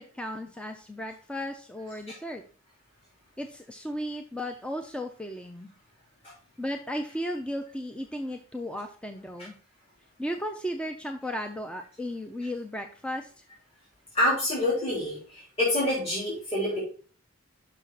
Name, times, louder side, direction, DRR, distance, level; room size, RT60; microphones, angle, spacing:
voice 1, 0.0-2.4 3.4-5.7 6.6-9.6 10.2-13.3, equal, 5° left, 5 dB, 0.5 m, -35 dB
voice 2, 14.1-16.8, left 1 dB, 30° left, -7 dB, 3.4 m, -27 dB
6.1 x 5.9 x 3.9 m, 0.40 s
head